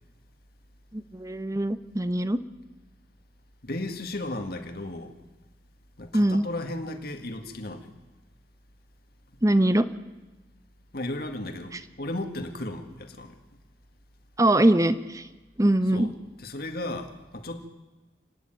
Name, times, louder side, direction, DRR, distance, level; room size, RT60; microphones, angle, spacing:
voice 1, 0.9-2.4 6.1-6.4 9.4-9.9 14.4-15.2 15.6-16.1, right 1 dB, 20° right, 12 dB, 0.8 m, -22 dB
voice 2, 3.6-5.1 6.0-7.9 10.9-13.4 15.9-16.1 16.4-17.7, left 1 dB, 60° left, 6 dB, 2.1 m, -35 dB
29.5 x 10.0 x 9.2 m, 1.1 s
head